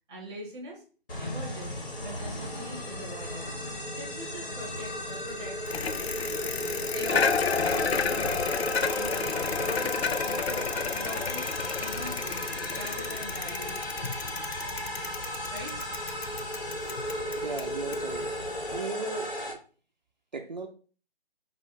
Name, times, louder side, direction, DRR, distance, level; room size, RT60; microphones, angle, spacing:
voice 1, 0.1-0.8 1.2-3.5 3.9-5.7 6.9-8.6 8.9-11.5 11.8-12.4 12.7-14.4 15.5-15.8, right 1 dB, 5° right, -4 dB, 0.9 m, -43 dB
sound 1, 1.1-19.5, equal, 60° left, 2.4 m, -35 dB
Bicycle, 5.7-18.8, left 5 dB, 80° left, 0.5 m, -32 dB
voice 2, 17.4-19.4 20.3-20.7, right 3 dB, 45° right, 3 dB, 0.5 m, -37 dB
5.2 x 2.5 x 3.8 m, 0.38 s
figure-of-eight pair, 145°, 31 cm